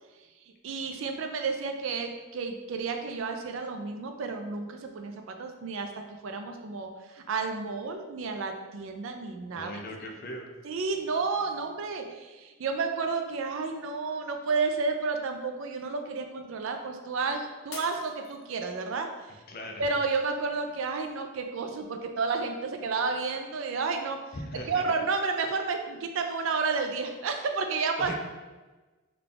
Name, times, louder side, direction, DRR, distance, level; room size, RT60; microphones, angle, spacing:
voice 1, 0.6-9.7 10.6-19.4 19.8-24.2 24.7-28.1, right 4 dB, 65° right, 5 dB, 0.4 m, -31 dB
voice 2, 9.6-10.5 19.5-19.9 24.3-24.8 28.0-28.1, left 1 dB, 45° left, 1 dB, 0.5 m, -38 dB
Shatter, 17.7-19.0 19.5-20.0 20.5-20.6, left 3 dB, 80° left, 0.7 m, -45 dB
3.4 x 2.3 x 3.7 m, 1.2 s
head